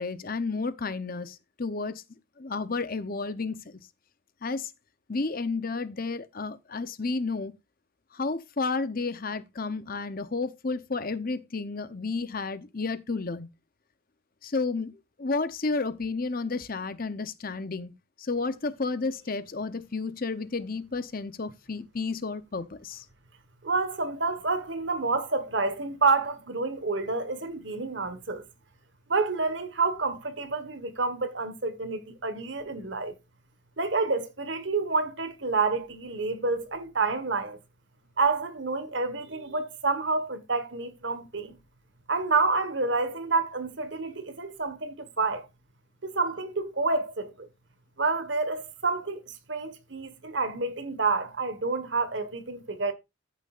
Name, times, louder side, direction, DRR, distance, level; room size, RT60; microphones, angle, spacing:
voice 1, 0.0-2.0 2.4-3.8 4.4-4.7 5.1-7.5 8.1-13.5 14.4-14.9 15.2-23.0, left 3 dB, 45° left, 0.8 m, -31 dB
voice 2, 23.6-28.4 29.1-33.2 33.8-37.6 38.2-41.6 42.1-45.4 46.0-47.5 48.0-52.9, right 3 dB, 55° right, 1.5 m, -28 dB
15.0 x 6.5 x 2.5 m
head